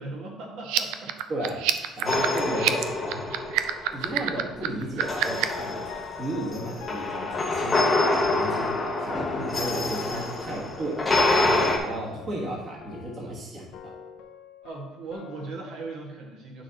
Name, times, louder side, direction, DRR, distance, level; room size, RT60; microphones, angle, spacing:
voice 1, 0.0-1.2 9.1-9.4 10.8-11.9 14.6-16.6, right 3 dB, 65° right, -2 dB, 1.7 m, -39 dB
sound 1, 0.6-5.6, right 13 dB, 85° right, 0.4 m, -27 dB
voice 2, 1.3-1.7 2.0-3.3 3.9-11.0 11.3-13.9, right 1 dB, 30° right, -4 dB, 1.4 m, -34 dB
sound 2, 2.1-4.1 5.0-11.8, left 2 dB, 15° left, 0.8 m, -26 dB
sound 3, 5.4-13.5 13.7-15.5, left 9 dB, 60° left, 0.7 m, -42 dB
9.3 x 6.0 x 2.9 m, 1.1 s
cardioid pair, 180°, 0 cm